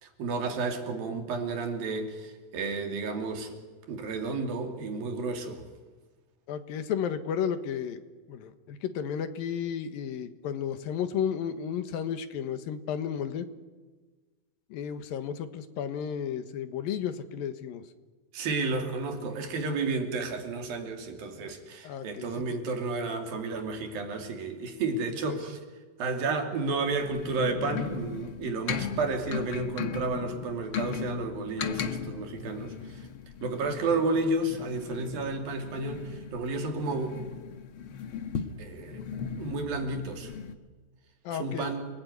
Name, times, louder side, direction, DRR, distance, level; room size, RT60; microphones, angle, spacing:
voice 1, 0.0-3.6 3.9-5.6 18.3-25.6 26.0-33.1 33.4-37.2 38.6-39.1 39.4-40.3 41.3-41.9, right 3 dB, 80° right, 5 dB, 4.6 m, -32 dB
voice 2, 6.5-8.0 8.3-13.5 14.7-17.8 19.2-19.6 21.4-21.5 21.8-22.6 25.3-25.4 41.2-41.7, left 8 dB, 80° left, 10 dB, 3.1 m, -33 dB
sound 1, 26.9-40.5, left 7 dB, 55° left, 1.5 m, -37 dB
29.0 x 20.0 x 9.7 m, 1.3 s
omnidirectional pair, 4.1 m